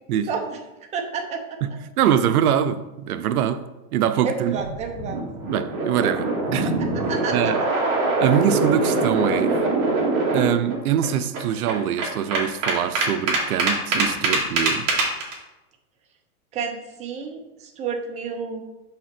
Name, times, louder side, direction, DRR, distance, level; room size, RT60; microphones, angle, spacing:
voice 1, 0.3-0.6 0.9-1.6 4.2-5.2 6.8-7.5 16.5-18.6, right 5 dB, 15° right, 4 dB, 0.6 m, -30 dB
voice 2, 1.6-3.6 3.9-4.6 5.5-6.7 7.3-7.6 8.2-9.6 10.3-14.9, right 9 dB, 80° right, 10 dB, 0.6 m, -23 dB
sound 1, 4.5-10.8 11.0-11.1 11.3-15.3, right 3 dB, 35° right, 2.2 m, -23 dB
5.8 x 4.0 x 5.9 m, 1.0 s
supercardioid pair, 150°, 43 cm